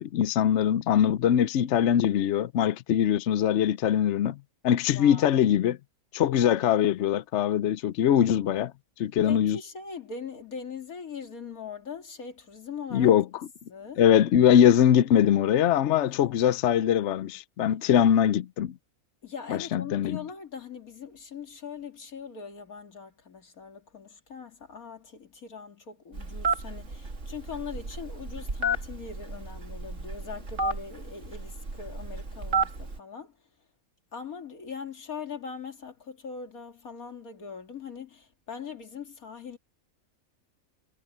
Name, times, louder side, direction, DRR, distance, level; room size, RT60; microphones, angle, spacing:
voice 1, 0.0-4.4 4.6-5.8 6.1-8.7 9.0-9.6 12.9-13.2 14.0-18.7 19.5-20.2, left 10 dB, 65° left, 0.8 m, -22 dB
voice 2, 4.9-5.4 9.2-13.1 13.7-14.0 16.2-16.5 19.2-33.4 34.1-39.6, left 6 dB, 85° left, 2.8 m, -41 dB
Telephone, 26.1-33.0, right 2 dB, 55° right, 2.8 m, -32 dB
omnidirectional pair, 1.5 m